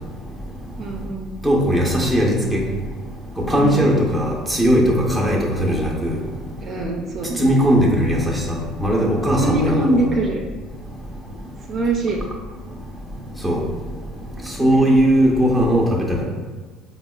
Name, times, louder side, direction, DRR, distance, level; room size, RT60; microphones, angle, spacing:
voice 1, 0.8-1.3 3.5-3.8 6.6-7.5 9.4-10.4 11.7-12.3 14.6-15.0, right 2 dB, 40° right, -1 dB, 0.4 m, -24 dB
voice 2, 1.4-2.6 3.4-6.2 7.4-8.4 8.8-10.0 13.4-13.6 14.6-16.2, equal, ahead, -3 dB, 0.6 m, -18 dB
4.5 x 2.1 x 2.3 m, 1.4 s
cardioid pair, 125°, 0 cm